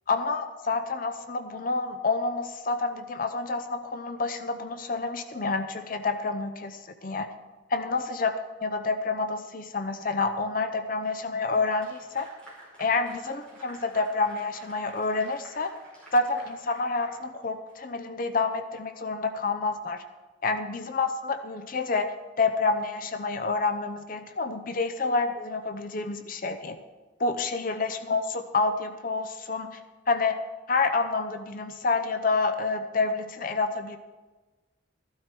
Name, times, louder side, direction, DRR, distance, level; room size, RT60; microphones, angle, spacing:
voice 1, 0.1-7.3 7.7-8.3 8.6-12.3 12.8-15.7 16.1-20.0 20.4-26.8 27.2-29.8 30.1-30.4 30.7-34.0, left 3 dB, 45° left, 9 dB, 0.6 m, -28 dB
Clapping / Applause, 11.5-17.9, right 1 dB, 5° left, 4.9 m, -51 dB
14.5 x 12.0 x 4.5 m, 1.3 s
head